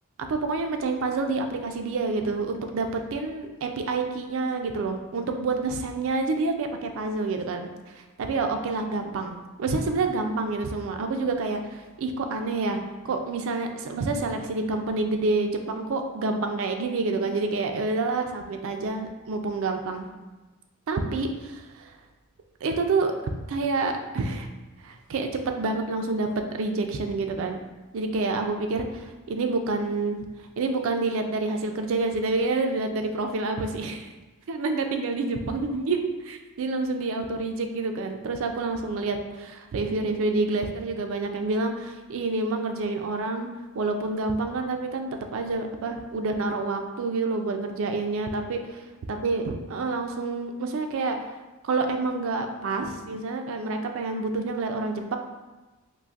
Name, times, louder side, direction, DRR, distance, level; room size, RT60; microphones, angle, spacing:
voice 1, 0.3-7.7 8.2-12.8 13.0-20.1 20.9-21.9 22.6-23.1 23.5-24.5 24.8-27.6 27.9-30.2 30.6-34.1 34.5-43.5 43.7-48.8 49.1-51.2 51.6-55.2, right 3 dB, 60° right, 5 dB, 0.4 m, -28 dB
3.9 x 2.5 x 2.4 m, 1.2 s
head